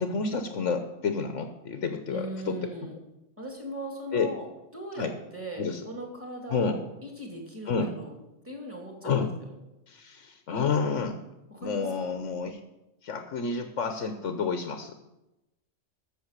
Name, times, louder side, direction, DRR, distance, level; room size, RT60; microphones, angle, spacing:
voice 1, 0.0-2.6 4.1-4.3 5.0-5.1 5.6-5.8 6.5-6.8 7.7-7.9 9.0-9.3 9.9-11.2 11.6-12.6 13.0-14.9, left 5 dB, 85° left, 7 dB, 1.3 m, -29 dB
voice 2, 2.1-3.0 3.4-4.5 4.7-8.2 8.4-9.5 11.5-12.2, right 1 dB, 10° right, 0 dB, 2.6 m, -39 dB
14.0 x 6.7 x 6.6 m, 0.95 s
omnidirectional pair, 1.3 m